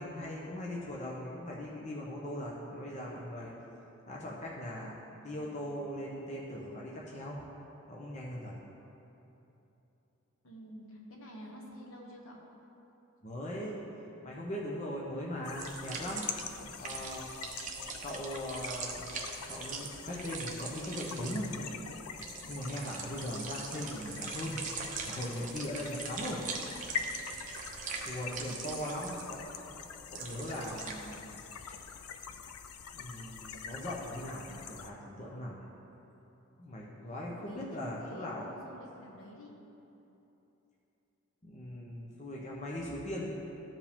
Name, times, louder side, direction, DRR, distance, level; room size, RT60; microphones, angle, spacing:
voice 1, 0.0-3.5 4.1-5.0 5.2-7.4 7.9-8.5 13.2-13.8 14.2-16.3 16.8-17.3 18.0-19.1 19.4-21.7 22.5-24.6 25.1-26.4 28.0-29.4 30.1-31.3 32.9-35.7 36.6-38.5 41.4-43.3, left 1 dB, 30° left, -4 dB, 0.8 m, -39 dB
voice 2, 5.2-5.6 10.4-12.4 22.4-22.6 37.2-39.6, equal, 70° left, -1 dB, 1.2 m, -50 dB
sound 1, 15.4-34.9, left 6 dB, 90° left, 0.5 m, -45 dB
sound 2, 15.6-16.5 16.7-30.9, right 5 dB, 35° right, 0.7 m, -42 dB
13.5 x 4.9 x 3.6 m, 3.0 s
head